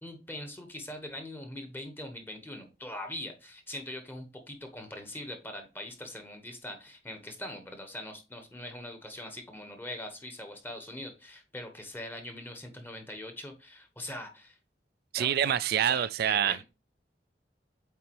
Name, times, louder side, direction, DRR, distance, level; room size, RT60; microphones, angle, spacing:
voice 1, 0.0-14.6 15.2-15.5 15.9-16.6, left 1 dB, 10° left, 1.1 m, -42 dB
voice 2, 15.1-16.6, right 9 dB, 60° right, 0.3 m, -26 dB
8.1 x 4.1 x 3.0 m
head